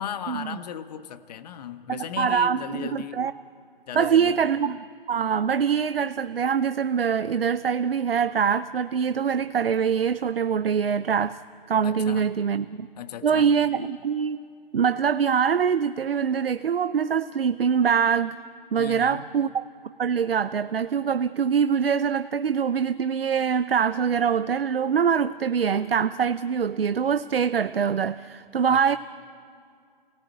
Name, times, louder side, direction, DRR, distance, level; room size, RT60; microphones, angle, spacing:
voice 1, 0.0-3.2 3.9-4.4 11.8-12.3 13.0-13.5 18.8-19.3 28.7-29.0, left 9 dB, 45° left, 1.5 m, -36 dB
voice 2, 1.9-3.3 3.9-11.4 11.7-12.9 13.2-14.4 14.7-18.4 18.7-19.6 20.0-29.0, right 7 dB, 75° right, 0.7 m, -24 dB
29.5 x 18.0 x 8.5 m
figure-of-eight pair, 130°, 29 cm